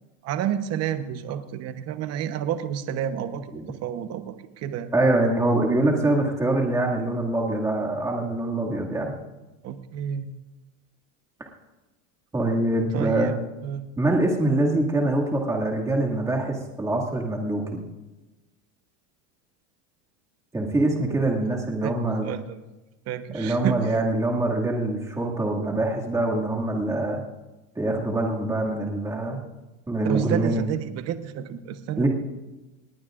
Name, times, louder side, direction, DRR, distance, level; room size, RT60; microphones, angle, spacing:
voice 1, 0.2-4.9 9.6-10.3 12.9-13.4 13.6-13.9 21.4-21.9 22.2-22.6 23.1-24.0 30.0-32.1, right 9 dB, 40° right, 10 dB, 1.0 m, -30 dB
voice 2, 4.9-9.1 12.3-13.3 14.0-17.8 20.5-22.3 23.3-27.2 27.8-29.4 29.9-30.7 32.0-32.1, right 2 dB, 10° right, -2 dB, 2.2 m, -24 dB
20.0 x 18.0 x 2.5 m, 1.1 s
supercardioid pair, 135°, 38 cm